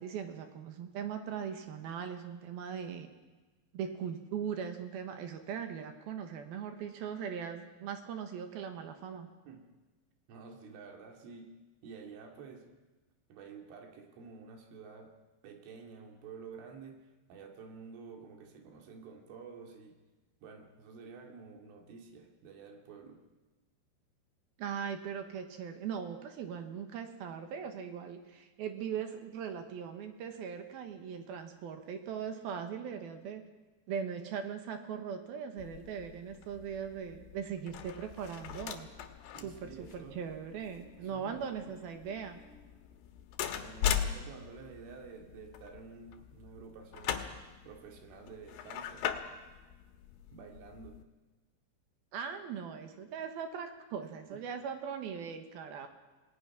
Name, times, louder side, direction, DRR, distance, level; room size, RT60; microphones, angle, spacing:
voice 1, 0.0-3.1 3.7-9.3 24.6-33.4 33.9-38.9 39.4-42.4 52.1-55.9, right 7 dB, 65° right, 7 dB, 2.7 m, -40 dB
voice 2, 10.3-11.6 11.8-12.7 13.3-15.1 15.4-20.0 20.4-23.2 39.3-40.2 41.0-41.8 43.5-47.3 47.7-49.1 50.3-51.0 54.3-54.5, right 5 dB, 90° right, 3 dB, 4.9 m, -50 dB
sound 1, 35.6-51.0, left 9 dB, 70° left, 3.1 m, -40 dB
27.5 x 19.0 x 6.0 m, 1.2 s
omnidirectional pair, 5.4 m